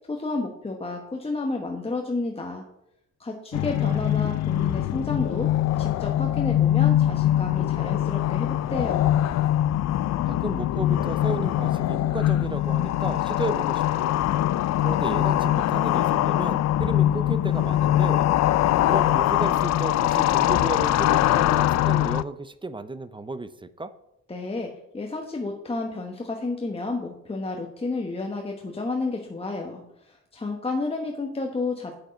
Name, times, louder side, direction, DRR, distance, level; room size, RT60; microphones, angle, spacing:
voice 1, 0.1-2.6 3.2-5.5 5.8-9.1 24.3-32.0, left 3 dB, 20° left, 1 dB, 1.1 m, -31 dB
sound 1, 3.5-22.2, left 13 dB, 60° left, 0.4 m, -22 dB
voice 2, 3.8-4.1 10.3-14.1 14.8-18.3 18.8-23.9, right 2 dB, 15° right, 13 dB, 0.5 m, -34 dB
8.0 x 7.2 x 5.1 m, 0.83 s
cardioid pair, 90°, 30 cm